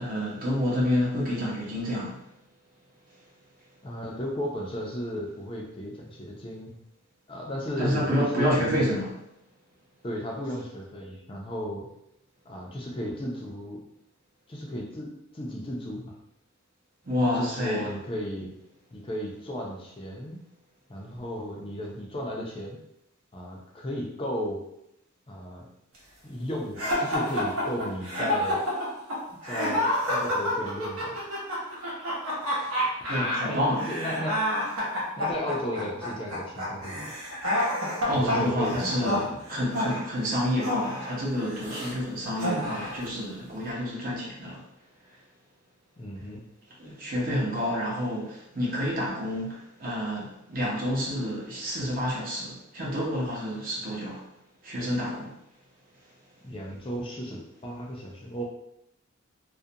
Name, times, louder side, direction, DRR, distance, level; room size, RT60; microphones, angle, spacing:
voice 1, 0.0-2.2 7.8-9.2 17.0-17.9 33.1-33.8 38.1-44.6 46.8-54.2 54.6-55.3, equal, 40° right, -4 dB, 0.7 m, -29 dB
voice 2, 3.8-6.8 7.3-9.0 10.0-11.9 12.5-13.8 14.5-16.1 17.3-18.5 18.9-20.4 20.9-22.8 23.3-24.6 25.3-25.7 26.2-28.6 29.4-31.2 33.4-34.4 35.2-37.0 38.1-39.4 46.0-46.4 56.4-58.4, equal, 25° left, -2 dB, 0.4 m, -34 dB
sound 1, 26.8-41.9 42.4-43.1, left 1 dB, 90° right, 0.9 m, -29 dB
2.4 x 2.1 x 2.7 m, 0.80 s
head